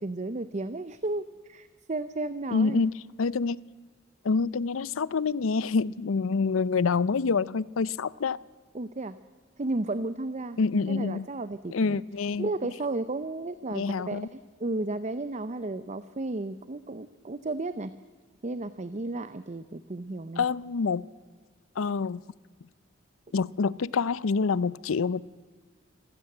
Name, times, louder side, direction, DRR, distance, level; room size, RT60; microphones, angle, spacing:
voice 1, 0.0-2.8 8.7-9.1 9.6-10.6 10.9-12.0 12.4-17.9 18.4-20.5, right 2 dB, 35° right, 0.6 m, -33 dB
voice 2, 2.5-2.9 3.2-3.6 4.2-8.4 10.6-11.3 11.7-12.5 13.7-14.3 20.4-21.1 21.8-22.2 23.3-25.2, left 4 dB, 90° left, 0.5 m, -26 dB
26.0 x 16.0 x 7.8 m
head